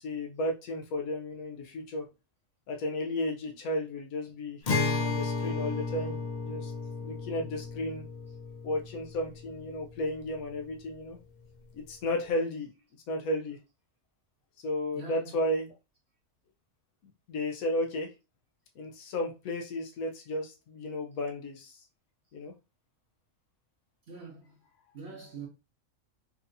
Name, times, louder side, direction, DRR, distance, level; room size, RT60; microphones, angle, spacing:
voice 1, 0.0-2.1 2.7-4.6 5.0-6.7 7.0-8.0 8.6-11.2 11.7-12.7 13.1-13.6 14.6-15.7 17.3-18.1 18.8-21.9 22.3-22.5, left 1 dB, 90° left, 1.2 m, -33 dB
Acoustic guitar, 4.7-10.1, left 3 dB, 50° left, 0.5 m, -33 dB
voice 2, 14.9-15.5 24.1-24.6 24.9-25.5, right 4 dB, 55° right, 0.9 m, -45 dB
4.3 x 2.7 x 2.6 m
omnidirectional pair, 1.4 m